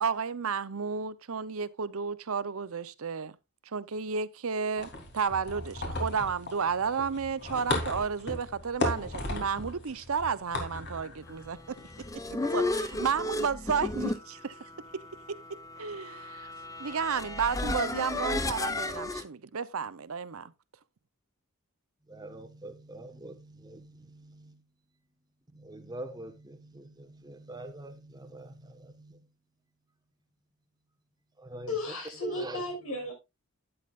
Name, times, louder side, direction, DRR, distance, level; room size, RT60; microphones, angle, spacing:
voice 1, 0.0-3.3 3.7-11.8 12.5-14.5 15.3-15.4 15.8-16.5 16.8-20.5, right 6 dB, 75° right, 0.7 m, -32 dB
sound 1, 4.8-12.1, left 2 dB, 50° left, 3.1 m, -36 dB
sound 2, 11.7-19.2, left 2 dB, 15° left, 0.7 m, -34 dB
voice 2, 22.1-24.6 25.5-29.2 31.4-32.7, right 1 dB, 20° right, 1.3 m, -44 dB
voice 3, 31.7-33.1, left 2 dB, 70° left, 6.1 m, -34 dB
12.0 x 9.7 x 2.4 m
head